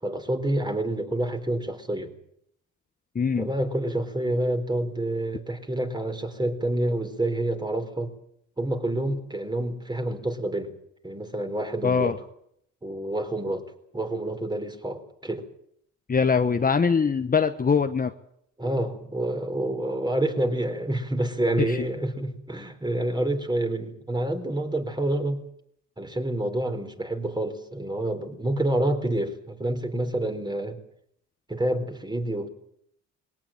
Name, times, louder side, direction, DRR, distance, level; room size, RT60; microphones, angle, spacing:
voice 1, 0.0-2.2 3.4-8.1 8.6-10.8 11.0-12.1 12.8-13.7 13.9-15.5 18.6-25.4 26.0-30.8 31.5-32.5, right 1 dB, 15° right, 6 dB, 4.2 m, -28 dB
voice 2, 3.1-3.5 11.8-12.2 16.1-18.1 21.7-21.9, left 5 dB, 30° left, 8 dB, 1.2 m, -22 dB
21.0 x 18.5 x 8.9 m, 0.70 s
cardioid pair, 90°, 30 cm